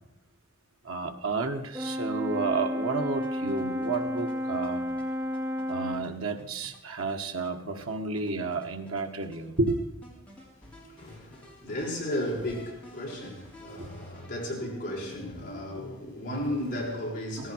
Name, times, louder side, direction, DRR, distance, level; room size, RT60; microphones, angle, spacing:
voice 1, 0.8-4.8 5.7-9.8 13.8-13.9 17.4-17.5, right 3 dB, 85° right, 1.7 m, -31 dB
Brass instrument, 1.7-6.1, equal, 10° right, 0.7 m, -32 dB
sound 1, 3.1-16.2, equal, 5° left, 3.7 m, -51 dB
voice 2, 10.7-17.5, left 1 dB, 40° left, 6.3 m, -34 dB
17.5 x 15.5 x 4.8 m
head